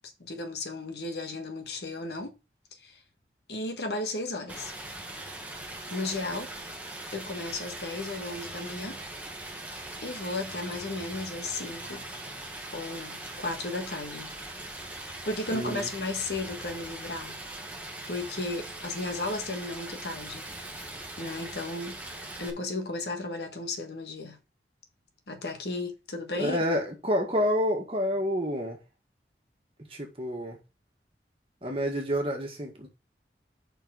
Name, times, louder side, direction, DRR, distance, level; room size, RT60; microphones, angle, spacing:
voice 1, 0.2-2.3 2.8-3.0 3.5-4.7 5.9-6.5 7.1-9.0 10.0-12.1 12.7-14.3 15.2-17.4 18.1-20.4 21.2-22.0 22.4-24.4 25.3-26.6, left 2 dB, 70° left, 1.4 m, -34 dB
Stream, 4.5-22.5, right 2 dB, 10° right, 1.2 m, -41 dB
voice 2, 15.5-15.9 26.4-28.8 29.9-30.6 31.6-32.9, equal, 30° right, 1.9 m, -28 dB
5.4 x 4.6 x 6.2 m
head